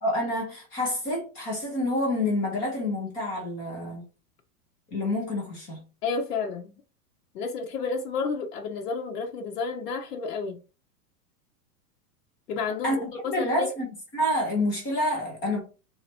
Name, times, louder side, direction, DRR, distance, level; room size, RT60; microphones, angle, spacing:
voice 1, 0.0-4.0 4.9-5.8 12.8-13.9 14.1-15.6, left 1 dB, 10° left, 0.4 m, -28 dB
voice 2, 6.0-6.8 7.3-10.6 12.5-13.7, left 4 dB, 80° left, 1.1 m, -31 dB
3.2 x 3.0 x 4.1 m
supercardioid pair, 155°, 46 cm